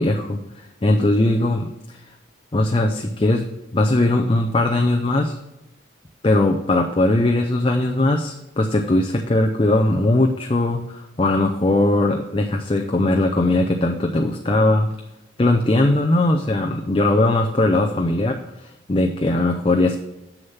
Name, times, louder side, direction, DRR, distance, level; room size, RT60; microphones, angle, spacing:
voice 1, 0.0-2.0 2.5-5.4 6.2-14.9 15.4-20.0, left 2 dB, 25° left, 3 dB, 0.5 m, -20 dB
7.2 x 6.6 x 5.7 m, 0.94 s
head